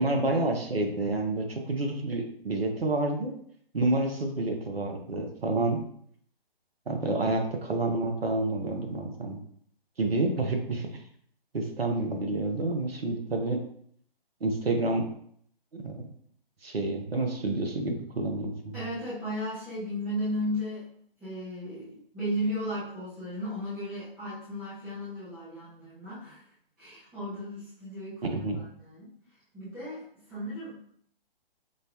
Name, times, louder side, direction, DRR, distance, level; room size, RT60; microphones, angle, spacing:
voice 1, 0.0-3.3 3.7-5.8 6.9-9.4 10.0-10.9 11.5-13.6 14.4-15.1 15.7-16.1 16.6-18.8 28.3-28.6, right 2 dB, 75° right, 3 dB, 1.0 m, -29 dB
voice 2, 18.7-20.9 21.2-26.4 26.8-29.1 29.5-30.9, equal, 5° right, -14 dB, 0.4 m, -35 dB
5.1 x 2.2 x 2.9 m, 0.63 s
figure-of-eight pair, 130°, 30 cm